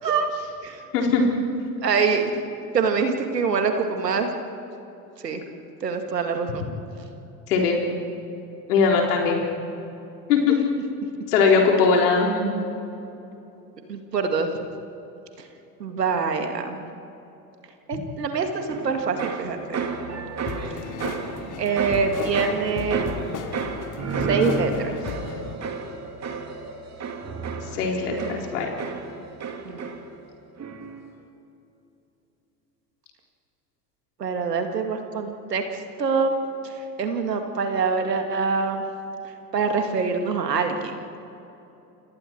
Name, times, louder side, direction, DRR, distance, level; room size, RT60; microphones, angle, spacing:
voice 1, 1.8-2.3 2.7-4.3 5.2-5.4 5.8-6.7 13.9-14.5 15.8-16.9 17.9-19.9 21.6-23.1 24.3-25.0 29.6-29.8 34.2-35.6 36.0-36.4 36.6-36.7 37.0-38.8 39.5-40.9, right 5 dB, 80° right, 5 dB, 2.3 m, -25 dB
voice 2, 7.5-7.8 8.7-9.4 10.3-10.6 11.3-12.6 27.7-28.7, left 5 dB, 70° left, 0 dB, 4.1 m, -20 dB
sound 1, 18.7-30.3 30.6-31.1, right 4 dB, 35° right, 2.8 m, -32 dB
sound 2, 20.5-25.5, left 5 dB, 40° left, 2.7 m, -35 dB
29.0 x 27.5 x 4.6 m, 2.9 s
figure-of-eight pair, 70°, 48 cm